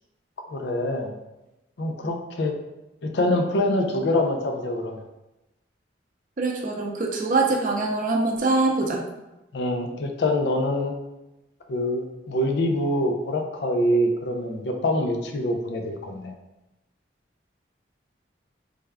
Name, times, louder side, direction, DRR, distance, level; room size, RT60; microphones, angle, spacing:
voice 1, 0.5-1.2 1.8-2.5 3.0-5.0 9.5-10.9 11.7-16.3, left 1 dB, 65° left, 4 dB, 0.4 m, -25 dB
voice 2, 6.4-9.0, right 3 dB, 45° right, 0 dB, 0.5 m, -23 dB
3.3 x 2.2 x 3.4 m, 0.98 s
head